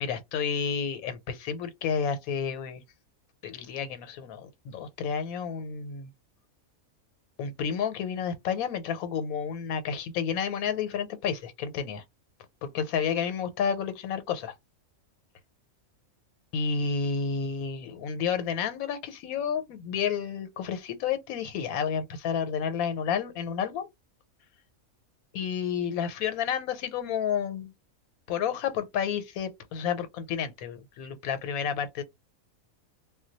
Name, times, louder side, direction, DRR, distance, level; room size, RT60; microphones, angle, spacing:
voice 1, 0.0-2.8 3.4-6.1 7.4-12.0 12.6-14.5 16.5-23.9 25.3-27.7 28.3-32.0, left 7 dB, 85° left, 1.1 m, -30 dB
2.2 x 2.1 x 3.8 m
omnidirectional pair, 1.5 m